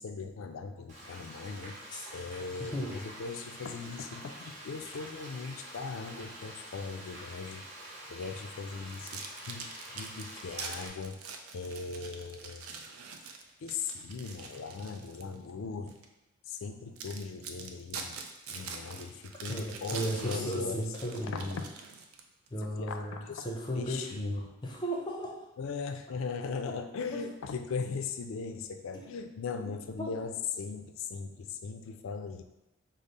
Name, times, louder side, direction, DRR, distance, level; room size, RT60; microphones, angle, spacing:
voice 1, 0.0-1.8 2.1-7.6 8.1-11.2 11.5-12.8 13.6-15.9 16.5-18.2 18.5-20.9 21.2-21.7 22.8-24.4 25.6-32.4, left 5 dB, 75° left, 7 dB, 0.4 m, -39 dB
Frying (food), 0.9-10.9, right 1 dB, 35° right, 1.0 m, -47 dB
sound 1, 8.9-15.3 15.9-16.0 16.6-16.7 17.0-22.5, right 5 dB, 90° right, 0.4 m, -44 dB
voice 2, 19.5-21.5 22.5-25.4 26.7-26.8 27.1-27.2 28.9-29.0 30.0-30.1, equal, 20° left, -1 dB, 0.5 m, -35 dB
5.1 x 2.0 x 4.1 m, 0.95 s
head